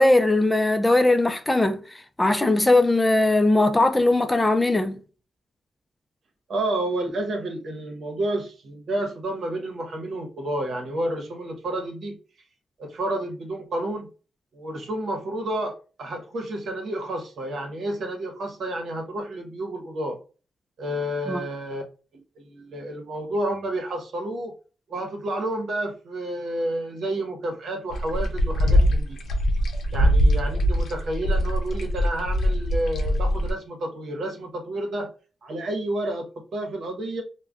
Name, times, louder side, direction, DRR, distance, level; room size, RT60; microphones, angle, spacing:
voice 1, 0.0-1.8 2.2-5.0 21.3-21.4, left 2 dB, 20° left, 0.5 m, -19 dB
voice 2, 6.5-12.2 12.8-14.1 14.5-20.2 20.8-21.8 22.4-24.5 24.9-29.2 29.9-35.1 35.4-37.2, right 1 dB, 70° right, 0.9 m, -30 dB
sound 1, 27.9-33.5, equal, 65° left, 0.7 m, -22 dB
2.4 x 2.2 x 3.4 m
cardioid pair, 60°, 0 cm